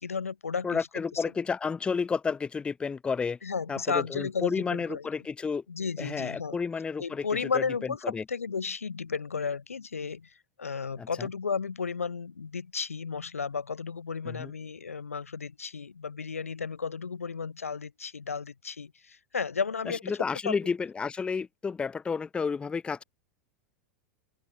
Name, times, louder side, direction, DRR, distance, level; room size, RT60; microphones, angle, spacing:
voice 1, 0.0-0.9 1.1-1.2 3.4-5.0 5.7-6.6 7.0-8.0 8.3-10.3 10.6-20.0 20.5-20.6, left 5 dB, 85° left, 0.5 m, -33 dB
voice 2, 0.6-3.4 3.7-5.6 6.0-7.3 7.5-8.2 11.0-11.3 14.2-14.5 19.9-23.0, left 5 dB, 15° left, 0.4 m, -31 dB
open air
figure-of-eight pair, 90°, 7 cm